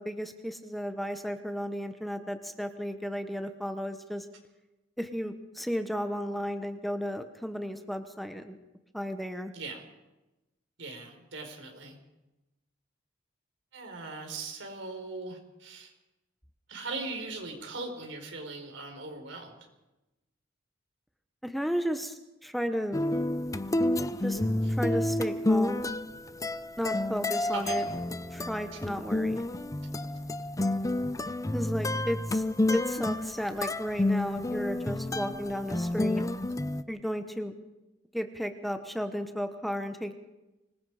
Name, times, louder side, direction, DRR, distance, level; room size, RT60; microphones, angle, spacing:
voice 1, 0.0-4.3 5.0-8.6 8.9-9.5 21.4-23.0 24.2-24.4 24.7-25.9 26.8-27.8 28.3-29.4 31.5-32.4 32.7-36.2 36.9-37.5 38.1-40.1, equal, ahead, 7 dB, 1.0 m, -33 dB
voice 2, 10.8-12.0 13.7-15.9 16.7-19.6 24.6-24.7 27.5-27.8 28.7-28.8, right 3 dB, 70° right, 4 dB, 4.8 m, -40 dB
sound 1, 22.9-36.8, left 1 dB, 15° left, 0.7 m, -30 dB
25.0 x 21.0 x 5.0 m, 1.0 s
head